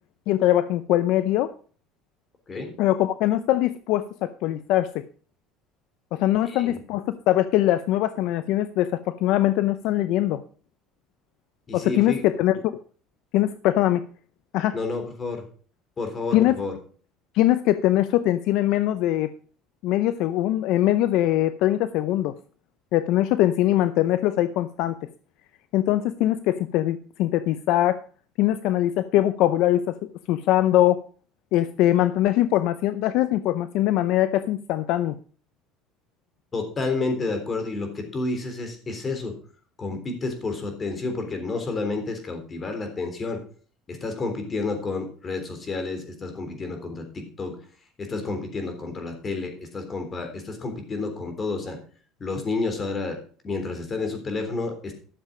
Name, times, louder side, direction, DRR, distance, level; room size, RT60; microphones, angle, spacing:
voice 1, 0.3-1.5 2.8-5.0 6.1-10.4 11.7-12.6 13.3-14.0 14.5-14.8 16.3-16.6 17.3-19.3 19.8-22.3 22.9-25.1 25.7-28.0 28.4-30.0 30.3-31.0 31.5-35.2, left 14 dB, 70° left, 12 dB, 0.6 m, -22 dB
voice 2, 11.7-12.2 14.7-15.4 16.0-16.7 36.5-39.4 39.8-43.4 43.9-47.6 48.0-51.8 52.2-53.2 53.4-54.9, left 3 dB, 30° left, 6 dB, 3.6 m, -30 dB
12.5 x 7.5 x 5.0 m, 0.42 s
supercardioid pair, 115°, 0 cm